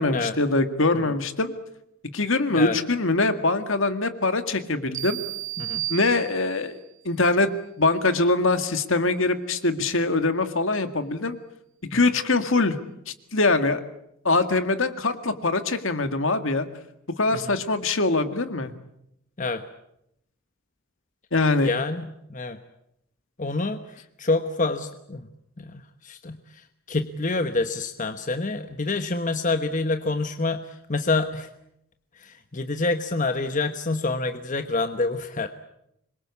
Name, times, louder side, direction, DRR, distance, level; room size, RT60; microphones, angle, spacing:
voice 1, 0.0-1.5 2.1-5.2 5.9-6.8 7.0-7.5 7.8-11.4 11.9-12.8 13.1-13.8 14.2-16.7 17.2-18.7 21.3-21.7, left 3 dB, 65° left, 9 dB, 2.0 m, -23 dB
sound 1, 4.9-6.8, right 15 dB, 60° right, 1.5 m, -33 dB
voice 2, 21.6-22.6 23.4-25.3 25.6-31.5 32.2-35.5, left 3 dB, 35° left, 8 dB, 1.1 m, -27 dB
26.0 x 22.5 x 8.4 m, 0.79 s
head